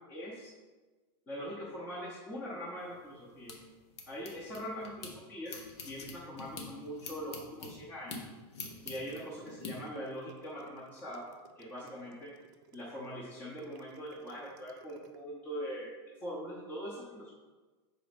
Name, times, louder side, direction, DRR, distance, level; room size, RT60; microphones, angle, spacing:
voice 1, 0.1-0.5 1.3-3.6 4.1-5.5 5.8-8.2 8.8-11.3 11.6-12.3 12.7-15.9 16.2-17.4, equal, 10° left, -6 dB, 0.7 m, -42 dB
sound 1, 2.8-5.1 5.5-9.7, left 4 dB, 85° left, 1.2 m, -46 dB
sound 2, 8.5-15.2, right 8 dB, 45° right, 0.5 m, -57 dB
6.2 x 4.0 x 5.1 m, 1.3 s
supercardioid pair, 180°, 14 cm